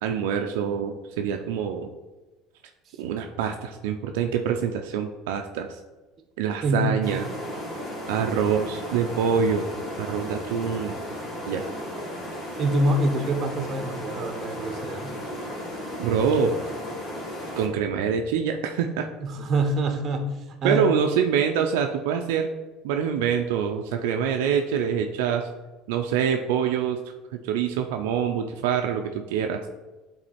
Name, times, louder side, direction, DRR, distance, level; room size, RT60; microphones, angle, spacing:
voice 1, 0.0-1.9 3.0-5.7 6.4-7.3 8.1-10.9 11.5-11.7 16.0-16.6 17.6-19.1 20.6-22.5 22.8-25.5 25.9-27.0 27.4-29.6, right 7 dB, 85° right, 4 dB, 0.5 m, -25 dB
voice 2, 6.6-7.1 12.6-15.2 19.2-20.9, right 1 dB, 40° right, 6 dB, 1.1 m, -25 dB
sound 1, 7.0-17.7, equal, 50° left, 2.6 m, -35 dB
9.8 x 3.9 x 4.3 m, 1.2 s
supercardioid pair, 110°, 0 cm